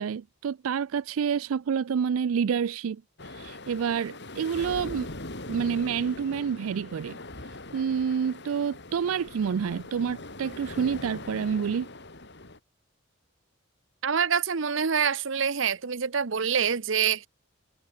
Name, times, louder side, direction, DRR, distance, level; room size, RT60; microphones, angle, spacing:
voice 1, 0.0-5.1 5.5-7.2 7.7-11.9, right 7 dB, 90° right, 0.4 m, -28 dB
sound 1, 3.2-12.6, left 2 dB, 55° left, 4.5 m, -41 dB
voice 2, 14.0-17.3, right 7 dB, 65° right, 0.8 m, -26 dB
head